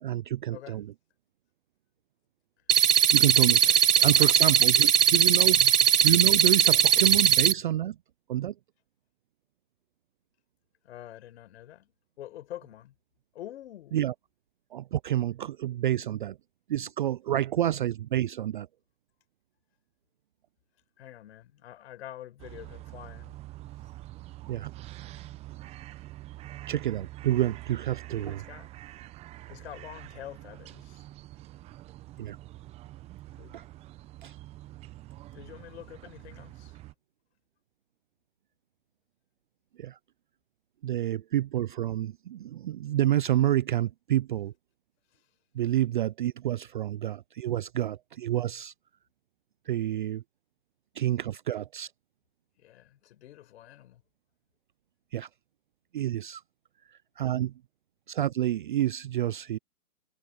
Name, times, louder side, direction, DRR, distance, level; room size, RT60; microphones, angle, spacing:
voice 1, 0.0-0.9 3.1-5.7 6.0-8.0 8.3-8.5 13.9-14.1 14.7-16.4 16.7-18.7 24.5-24.7 26.7-28.4 32.2-32.4 33.5-33.6 34.2-34.3 39.8-40.0 40.8-44.5 45.5-48.7 49.7-50.2 50.9-51.9 55.1-55.3 55.9-56.4 56.9-57.5 58.1-59.6, right 12 dB, 35° right, 0.6 m, -28 dB
sound 1, 2.7-7.5, right 9 dB, 90° right, 0.8 m, -20 dB
voice 2, 3.7-4.6 10.8-11.9 12.2-12.9 13.3-14.0 21.0-23.4 28.2-28.7 29.5-31.0 33.3-33.6 35.3-36.7 52.6-54.0, left 12 dB, 45° left, 5.5 m, -46 dB
sound 2, 22.4-36.9, right 16 dB, 15° right, 1.0 m, -45 dB
hypercardioid pair, 140°, 44 cm